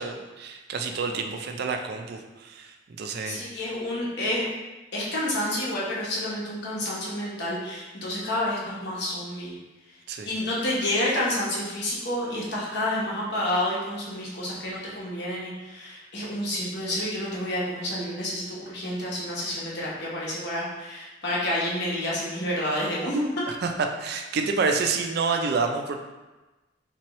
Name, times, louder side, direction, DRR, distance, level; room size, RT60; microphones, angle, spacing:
voice 1, 0.0-3.4 10.1-10.3 23.5-25.9, right 4 dB, 55° right, 4 dB, 0.4 m, -28 dB
voice 2, 3.3-4.4 4.9-9.5 10.3-23.3, left 1 dB, 60° left, -6 dB, 1.0 m, -29 dB
3.5 x 2.9 x 3.0 m, 1.1 s
head